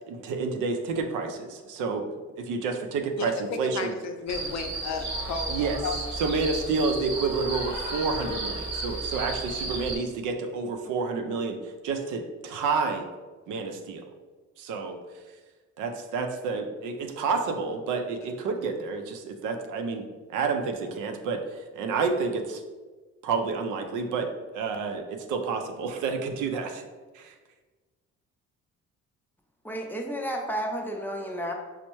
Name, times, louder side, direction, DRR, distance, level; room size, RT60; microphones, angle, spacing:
voice 1, 0.1-3.9 5.5-5.8 6.2-13.1 13.5-14.0 14.6-15.0 15.8-22.6 23.2-24.3 24.5-26.8 27.1-27.3, right 4 dB, 85° right, 5 dB, 0.5 m, -29 dB
voice 2, 3.2-5.6 5.8-6.2, left 5 dB, 65° left, 5 dB, 0.5 m, -33 dB
sound 1, 4.3-10.0, right 2 dB, 35° right, 1.0 m, -33 dB
voice 3, 29.6-31.5, equal, 5° left, 2 dB, 0.4 m, -32 dB
4.4 x 2.0 x 2.9 m, 1.3 s
cardioid pair, 90°, 30 cm